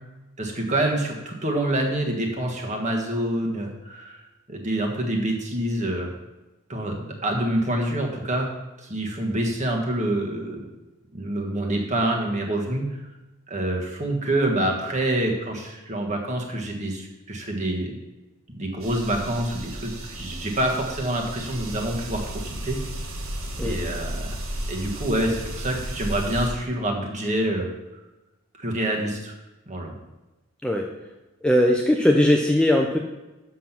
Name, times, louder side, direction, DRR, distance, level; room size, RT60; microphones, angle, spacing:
voice 1, 0.4-4.2 4.5-6.1 6.7-8.5 8.8-10.6 11.1-13.0 13.5-18.0 18.5-22.8 23.6-24.2 24.7-27.7 28.5-29.3 29.7-29.9, right 1 dB, 35° right, 1 dB, 1.4 m, -26 dB
sound 1, 18.8-26.5, right 1 dB, 75° right, 1.4 m, -33 dB
voice 2, 31.4-33.0, left 1 dB, 5° left, 1 dB, 0.5 m, -19 dB
7.3 x 5.8 x 5.9 m, 1.1 s
head